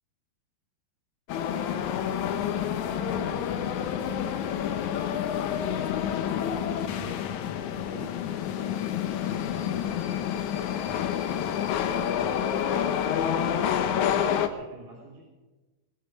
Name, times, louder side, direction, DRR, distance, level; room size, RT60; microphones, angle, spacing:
sound 1, 1.3-14.5, left 9 dB, 80° left, 1.7 m, -28 dB
voice 1, 1.9-6.6 6.9-7.2 7.8-8.9 9.3-11.1 11.8-12.6 13.1-15.2, right 1 dB, 45° right, -6 dB, 4.0 m, -47 dB
20.0 x 12.5 x 5.3 m, 1.2 s
omnidirectional pair, 4.5 m